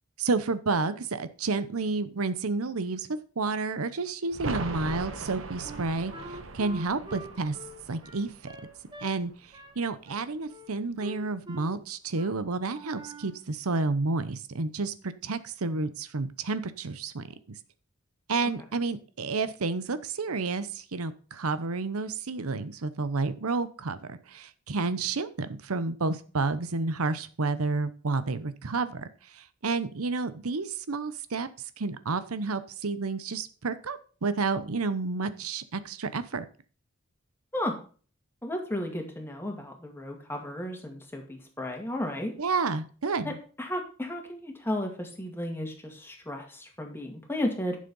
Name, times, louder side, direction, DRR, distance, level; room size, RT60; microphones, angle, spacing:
voice 1, 0.2-3.1 3.4-7.6 7.9-8.5 9.0-9.3 9.8-17.6 18.3-31.5 31.8-36.4 42.4-43.3, right 3 dB, 90° right, 13 dB, 0.8 m, -30 dB
sound 1, 4.3-9.9 10.2-10.3, right 3 dB, 70° right, 1.2 m, -39 dB
Wind instrument woodwind instrument, 5.6-9.1 9.5-9.8 10.1-10.7 11.0-11.8 12.1-12.4 12.7-13.4, right 1 dB, 20° right, 1.4 m, -44 dB
voice 2, 38.4-42.3 43.2-43.3 43.6-47.8, left 1 dB, 10° left, 2 dB, 2.1 m, -34 dB
11.5 x 6.6 x 5.4 m, 0.40 s
head